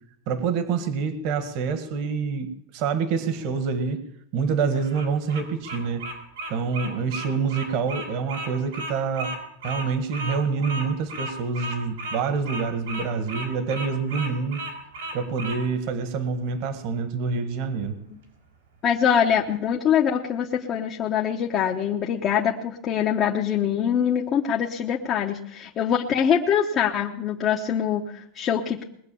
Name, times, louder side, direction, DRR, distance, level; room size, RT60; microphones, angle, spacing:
voice 1, 0.3-4.0 4.3-6.1 6.5-9.3 9.6-14.6 15.1-17.9, right 5 dB, 50° right, 10 dB, 1.6 m, -26 dB
Bird vocalization bird call bird song, 4.7-15.6, right 1 dB, 85° right, 4.8 m, -34 dB
voice 2, 18.8-28.8, left 8 dB, 30° left, 0 dB, 1.0 m, -24 dB
20.5 x 8.1 x 7.0 m, 0.75 s
supercardioid pair, 155°, 0 cm